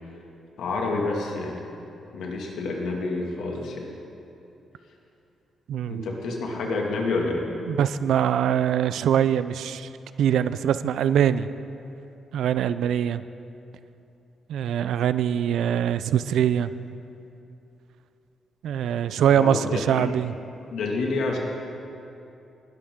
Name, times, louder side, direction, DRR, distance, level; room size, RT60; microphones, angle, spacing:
voice 1, 0.6-1.6 2.1-3.9 5.9-7.5 19.3-20.1 20.7-21.4, left 3 dB, 80° left, 0 dB, 2.1 m, -28 dB
voice 2, 5.7-6.1 7.7-9.9 10.2-11.5 12.3-13.2 14.5-16.7 18.6-20.3, right 9 dB, 80° right, 13 dB, 0.4 m, -23 dB
19.5 x 11.5 x 3.7 m, 2.8 s
cardioid pair, 130°, 0 cm